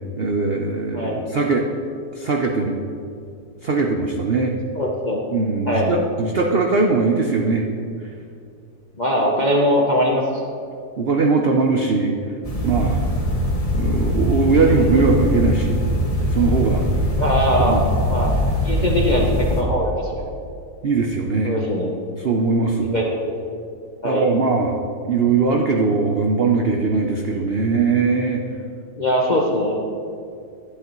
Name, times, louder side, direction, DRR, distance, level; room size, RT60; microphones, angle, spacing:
voice 1, 0.2-1.7 2.1-2.7 3.6-4.5 5.3-7.6 11.0-12.1 12.6-13.0 13.7-15.8 16.3-16.8 17.7-17.8 20.8-21.6 22.2-22.9 24.0-24.8 25.0-28.4, right 4 dB, 65° right, 2 dB, 0.6 m, -20 dB
voice 2, 4.7-5.2 5.7-5.9 9.0-10.2 17.2-17.8 18.1-18.4 18.6-20.3 21.4-21.9 22.9-23.6 24.0-24.3 29.0-29.8, equal, 40° left, -2 dB, 0.6 m, -21 dB
sound 1, 12.4-19.6, equal, 25° left, 1.2 m, -21 dB
11.5 x 10.5 x 3.0 m, 2.4 s
omnidirectional pair, 1.8 m